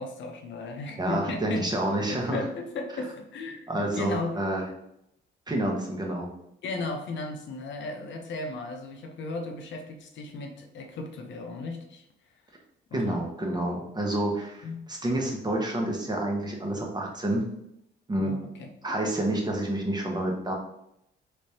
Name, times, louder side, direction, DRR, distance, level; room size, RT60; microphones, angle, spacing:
voice 1, 0.0-4.4 6.6-12.1 12.9-13.2 14.6-14.8 18.2-18.7, left 3 dB, 65° left, 3 dB, 0.7 m, -36 dB
voice 2, 1.0-2.5 3.7-4.6 5.5-6.3 12.9-17.5 18.1-18.3 18.8-20.5, right 1 dB, 20° right, 0 dB, 0.9 m, -28 dB
3.4 x 3.2 x 2.8 m, 0.79 s
cardioid pair, 90°, 20 cm